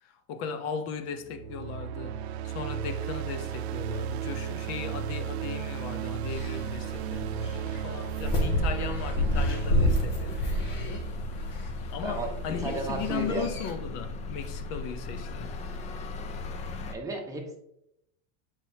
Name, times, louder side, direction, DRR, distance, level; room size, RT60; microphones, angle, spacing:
voice 1, 0.0-2.2 2.4-11.1 11.9-15.5, left 7 dB, 55° left, 0.8 m, -37 dB
sound 1, 1.2-12.3, right 8 dB, 90° right, 0.6 m, -35 dB
sound 2, 6.3-13.7, left 1 dB, 70° left, 1.8 m, -30 dB
sound 3, 9.5-16.9, left 3 dB, 25° left, 0.4 m, -38 dB
voice 2, 12.0-13.6 16.9-17.6, right 3 dB, 10° right, 1.1 m, -34 dB
7.5 x 4.9 x 2.8 m
supercardioid pair, 145°, 31 cm